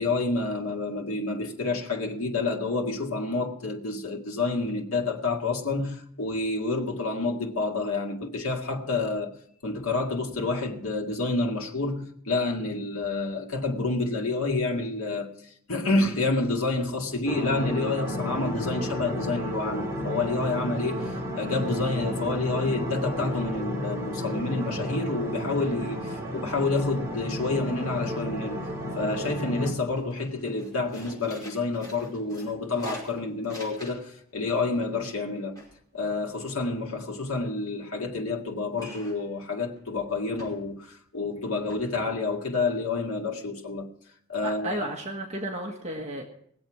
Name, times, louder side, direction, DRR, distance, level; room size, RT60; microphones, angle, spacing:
voice 1, 0.0-9.3 9.6-15.3 15.7-28.6 29.0-35.6 35.9-43.9 44.3-44.8, left 3 dB, 75° left, 2.0 m, -29 dB
sound 1, 17.2-29.7, equal, 15° right, 2.4 m, -32 dB
sound 2, 27.4-27.9 28.2-29.0 29.4-29.6 29.9-34.2 34.5-36.9 38.7-39.3 39.7-39.9 40.4-40.9 41.3-41.4 41.7-41.8, left 1 dB, 15° left, 5.2 m, -46 dB
voice 2, 44.4-46.3, right 1 dB, 30° right, 1.6 m, -33 dB
20.0 x 7.9 x 6.1 m
head